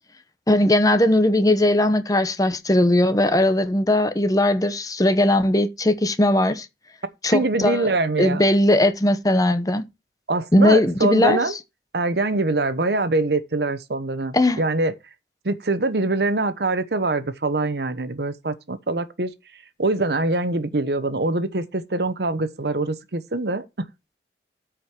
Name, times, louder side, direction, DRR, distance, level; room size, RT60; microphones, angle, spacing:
voice 1, 0.5-6.7 7.2-7.9 8.2-9.8 10.5-11.4 14.3-14.6, left 1 dB, 20° left, 0.9 m, -19 dB
voice 2, 7.3-8.4 10.3-11.6 11.9-14.9 15.4-19.3 19.8-23.9, right 2 dB, 65° right, 1.0 m, -24 dB
13.5 x 5.1 x 4.5 m
head